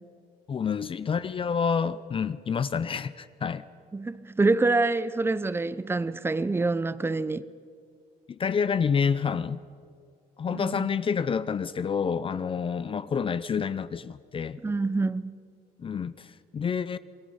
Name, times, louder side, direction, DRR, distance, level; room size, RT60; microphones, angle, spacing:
voice 1, 0.5-3.7 8.3-9.6 10.4-14.6 15.8-17.0, left 6 dB, 30° left, 0.6 m, -28 dB
voice 2, 3.9-7.4 10.5-10.9 14.6-15.3, right 3 dB, 15° right, 0.7 m, -26 dB
28.0 x 20.5 x 5.6 m
cardioid pair, 110°, 17 cm